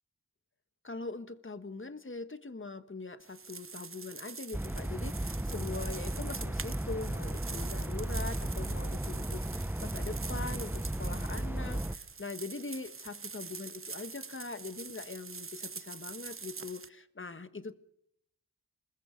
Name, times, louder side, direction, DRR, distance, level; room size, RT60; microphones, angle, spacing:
voice 1, 0.8-17.7, left 3 dB, 35° left, 11 dB, 1.5 m, -42 dB
sound 1, 3.2-16.9, right 5 dB, 40° right, 0.8 m, -45 dB
sound 2, 4.5-12.0, right 1 dB, 5° right, 0.7 m, -35 dB
26.0 x 21.5 x 5.2 m, 0.74 s
wide cardioid pair, 80°, 34 cm